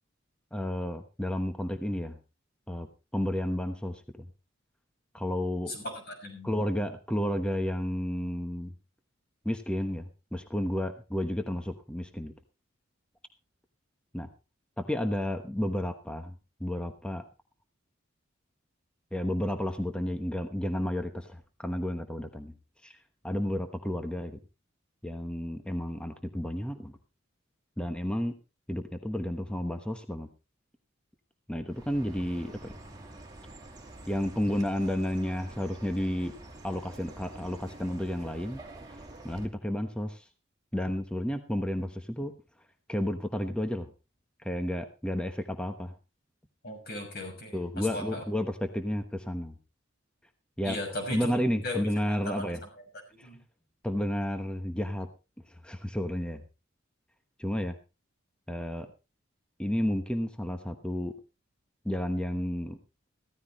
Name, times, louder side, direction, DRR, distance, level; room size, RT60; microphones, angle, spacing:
voice 1, 0.5-2.2 2.7-2.9 3.1-4.0 5.1-5.7 6.4-8.7 9.4-12.3 14.1-14.3 14.8-16.3 16.6-17.2 19.1-22.5 22.8-23.0 23.2-24.4 25.0-27.0 27.8-28.3 28.7-30.3 31.5-32.7 34.1-36.3 36.6-38.6 38.9-40.2 40.7-42.3 42.9-43.9 44.4-45.9 47.5-49.5 50.6-50.8 51.1-52.6 53.2-53.3 53.8-55.1 55.6-56.4 57.4-57.8 58.5-58.9 59.6-61.1 61.8-62.8, left 1 dB, 5° left, 6 dB, 1.1 m, -31 dB
voice 2, 5.7-6.5 46.6-48.2 50.6-51.8 52.1-52.4 53.2-53.4, left 1 dB, 55° left, 2 dB, 6.3 m, -37 dB
Chirp tweet, 31.7-39.5, right 2 dB, 20° right, 2.6 m, -47 dB
15.0 x 14.0 x 3.1 m, 0.30 s
head